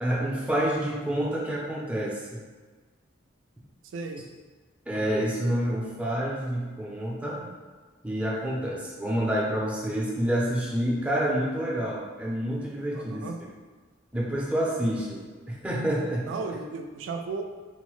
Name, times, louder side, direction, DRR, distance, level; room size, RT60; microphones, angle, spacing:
voice 1, 0.0-2.4 4.9-7.4 8.0-13.3 14.1-16.3, right 1 dB, 5° right, -4 dB, 0.5 m, -28 dB
voice 2, 3.9-4.2 12.9-13.3 16.3-17.4, right 4 dB, 65° right, 3 dB, 0.3 m, -35 dB
3.9 x 2.0 x 3.1 m, 1.4 s
head